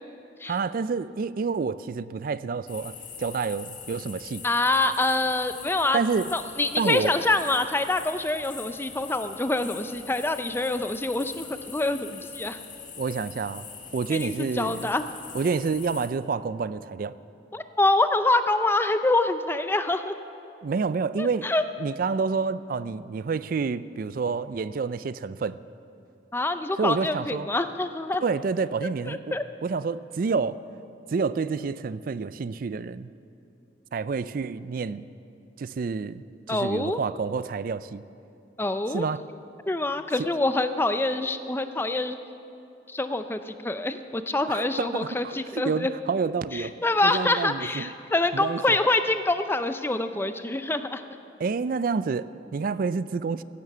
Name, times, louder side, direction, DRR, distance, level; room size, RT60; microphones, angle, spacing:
voice 1, 0.5-2.9 3.2-4.4 5.9-6.3 6.8-7.2 13.0-13.7 13.9-14.9 15.3-17.2 20.6-21.5 21.8-25.6 26.8-27.5 28.2-29.4 29.6-30.6 31.1-33.1 33.9-35.0 35.6-38.0 38.9-39.2 40.2-40.3 44.5-46.7 47.0-47.9 48.3-48.8 51.4-53.4, right 5 dB, 50° right, 16 dB, 0.4 m, -28 dB
sound 1, 2.7-16.1, left 7 dB, 45° left, 1.9 m, -42 dB
voice 2, 4.4-6.0 6.3-12.6 14.1-15.0 17.5-20.1 21.2-21.6 26.3-28.2 28.8-29.4 36.5-37.0 38.6-39.1 39.7-42.2 42.9-45.9 46.5-51.0, left 2 dB, 10° left, 10 dB, 0.5 m, -26 dB
15.5 x 10.5 x 6.8 m, 2.7 s
head